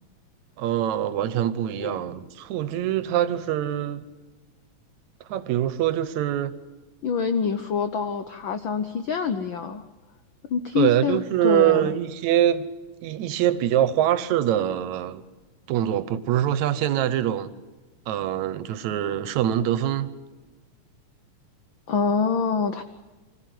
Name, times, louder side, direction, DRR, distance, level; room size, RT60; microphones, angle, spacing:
voice 1, 0.6-4.0 5.3-6.5 10.8-12.7 13.0-15.2 15.7-17.5 18.1-20.1, right 11 dB, 80° right, 2.2 m, -24 dB
voice 2, 7.0-9.8 10.5-11.9 21.9-22.8, left 5 dB, 80° left, 1.1 m, -26 dB
25.5 x 15.5 x 9.3 m
omnidirectional pair, 3.3 m